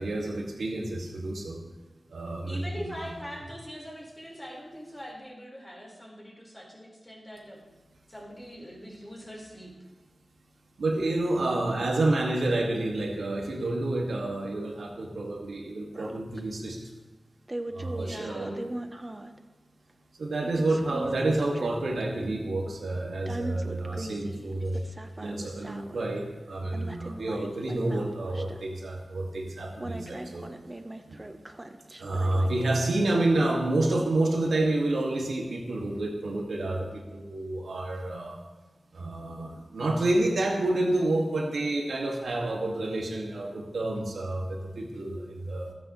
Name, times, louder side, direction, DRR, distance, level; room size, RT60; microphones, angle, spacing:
voice 1, 0.0-1.6 2.1-3.1 10.8-16.8 17.7-18.6 20.2-24.8 25.2-30.5 31.1-31.2 32.0-38.4 38.9-45.7, right 2 dB, 85° right, 0 dB, 2.2 m, -29 dB
voice 2, 2.5-7.6 8.1-9.7 18.0-18.6 20.7-21.1 24.7-24.9, equal, 10° left, -3 dB, 4.9 m, -42 dB
sound 1, 15.9-16.4 17.5-19.4 20.4-22.0 23.3-26.1 26.7-28.8 29.8-33.0, right 1 dB, 25° right, 1.0 m, -40 dB
27.5 x 9.6 x 3.3 m, 1.2 s
wide cardioid pair, 65°, 0 cm